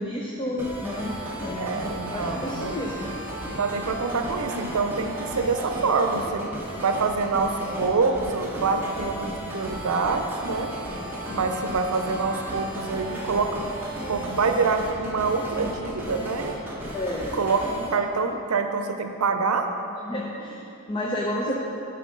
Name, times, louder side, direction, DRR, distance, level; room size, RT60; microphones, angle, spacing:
voice 1, 0.0-3.1 11.4-11.5 16.9-17.3 20.0-21.6, left 1 dB, 20° left, -2 dB, 0.5 m, -31 dB
sound 1, 0.6-17.9, right 1 dB, 10° right, 1.0 m, -34 dB
voice 2, 1.6-2.8 3.4-6.5 6.8-10.7 11.3-13.6 14.1-16.5 17.3-19.7 21.5-21.6, right 4 dB, 90° right, 6 dB, 0.6 m, -26 dB
9.2 x 5.7 x 3.8 m, 2.7 s
head